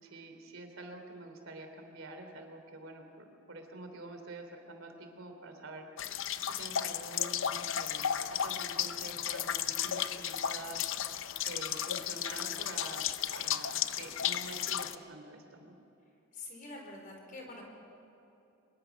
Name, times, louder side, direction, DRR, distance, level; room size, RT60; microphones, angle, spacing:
voice 1, 0.0-6.1 6.4-10.8 11.4-15.8, right 2 dB, 65° right, 4 dB, 3.2 m, -47 dB
sound 1, 6.0-15.0, left 9 dB, 60° left, 0.7 m, -34 dB
voice 2, 16.3-17.6, left 2 dB, 40° left, 1 dB, 4.5 m, -46 dB
23.5 x 22.0 x 6.1 m, 3.0 s
head